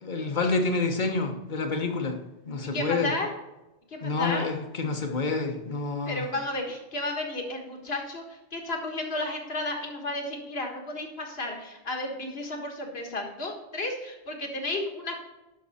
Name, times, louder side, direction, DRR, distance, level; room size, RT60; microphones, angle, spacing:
voice 1, 0.0-2.2 2.5-3.1 4.0-6.3, left 3 dB, 45° left, 4 dB, 1.2 m, -28 dB
voice 2, 2.6-3.3 3.9-4.5 6.1-15.2, left 2 dB, 65° left, 2 dB, 1.8 m, -33 dB
11.5 x 5.9 x 4.2 m, 1.0 s
omnidirectional pair, 1.1 m